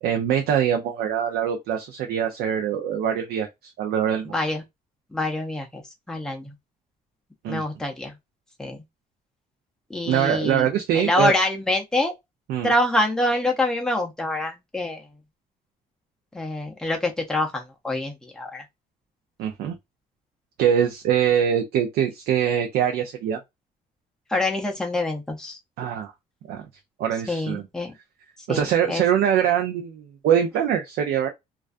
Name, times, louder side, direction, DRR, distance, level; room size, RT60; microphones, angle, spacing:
voice 1, 0.0-4.3 7.4-7.6 10.1-11.3 12.5-12.7 19.4-19.8 20.6-23.4 25.8-26.1 26.4-26.7 27.0-27.7 28.5-31.3, right 9 dB, 80° right, 0.5 m, -23 dB
voice 2, 4.3-4.6 5.1-5.8 6.1-6.5 7.5-8.1 8.6-8.8 9.9-10.7 11.0-12.1 12.6-15.0 16.3-18.6 24.3-25.6 27.3-27.9 28.5-29.0, left 1 dB, 5° left, 0.5 m, -25 dB
2.3 x 2.2 x 2.4 m
cardioid pair, 175°, 16 cm